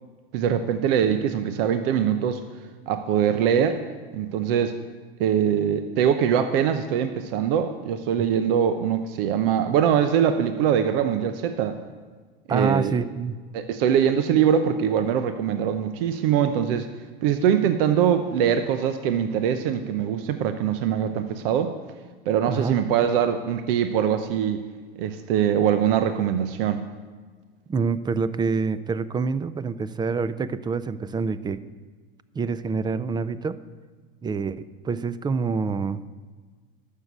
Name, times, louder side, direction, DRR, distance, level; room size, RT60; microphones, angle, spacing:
voice 1, 0.3-2.4 2.9-3.8 4.1-4.8 5.2-11.8 12.5-12.9 13.5-16.9 17.2-21.7 22.3-24.6 25.0-26.8, right 8 dB, 70° right, 9 dB, 0.8 m, -22 dB
voice 2, 12.5-13.4 22.5-22.7 27.7-31.6 32.3-33.6 34.2-36.0, right 5 dB, 15° right, 16 dB, 0.4 m, -26 dB
12.5 x 6.7 x 8.0 m, 1.5 s
supercardioid pair, 105°, 29 cm